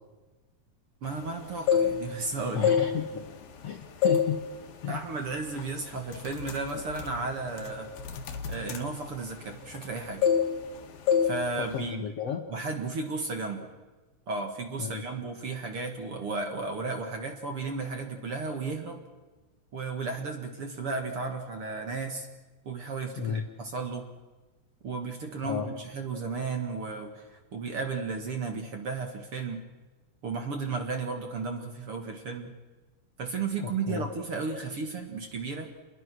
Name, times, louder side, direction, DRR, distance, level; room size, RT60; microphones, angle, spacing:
voice 1, 1.0-2.7 4.9-7.9 8.5-10.3 11.2-12.0 12.5-13.7 14.3-19.0 19.7-22.3 22.7-24.1 24.8-29.6 30.2-32.5 33.2-35.7, right 4 dB, 45° right, 4 dB, 2.3 m, -34 dB
sound 1, 1.5-2.2 2.6-3.6 4.0-4.4 4.7-5.0 5.6-5.8 6.1-9.9 10.2-10.8 11.1-11.4 11.6-11.9, left 7 dB, 80° left, 3.6 m, -26 dB
voice 2, 2.5-3.1 3.6-4.4 4.8-5.0 11.6-12.4 14.8-15.0 23.2-23.4 25.4-25.7 33.6-34.1, left 8 dB, 55° left, 5 dB, 1.9 m, -33 dB
29.0 x 21.5 x 6.3 m, 1.2 s
omnidirectional pair, 4.2 m